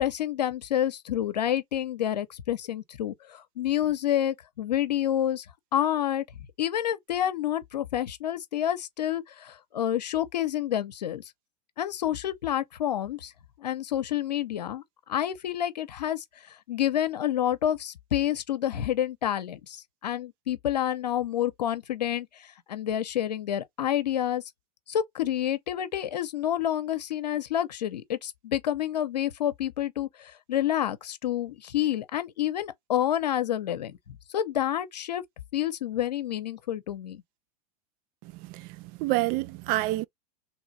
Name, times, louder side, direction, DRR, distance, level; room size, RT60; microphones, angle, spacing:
voice 1, 0.0-5.5 5.7-6.2 6.6-11.2 11.8-13.3 13.6-14.8 15.1-24.4 24.9-35.2 35.5-37.2, left 11 dB, 85° left, 0.7 m, -28 dB
voice 2, 38.2-40.1, right 17 dB, 45° right, 0.4 m, -28 dB
3.1 x 3.1 x 4.0 m
hypercardioid pair, 105°, 21 cm